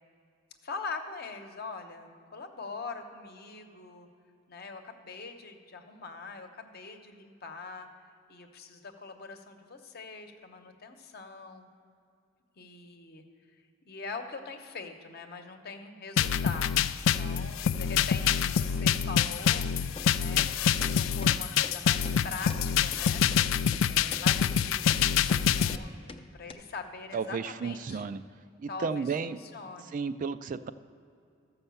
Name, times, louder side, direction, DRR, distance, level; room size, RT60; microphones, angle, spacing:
voice 1, 0.6-4.1 4.5-7.9 8.3-11.7 12.6-13.2 13.5-23.2 23.9-28.1 28.7-29.9, left 4 dB, 55° left, 5 dB, 0.9 m, -43 dB
sound 1, 16.2-25.8, left 8 dB, 85° left, 0.3 m, -26 dB
sound 2, 20.0-20.1 20.4-20.5 20.8-20.9 21.2-21.3 21.6-21.8 22.0-22.2 22.5-22.6 22.9-23.0 23.3-23.4 23.7-23.8 24.1-24.2 24.5-24.6 24.9-25.0 25.3-25.4 25.7-25.8 26.1-26.2 26.5-26.6, left 3 dB, 30° left, 0.5 m, -44 dB
voice 2, 27.1-28.2 28.6-29.4 29.9-30.7, right 5 dB, 40° right, 12 dB, 0.3 m, -33 dB
13.5 x 5.5 x 7.0 m, 2.5 s
head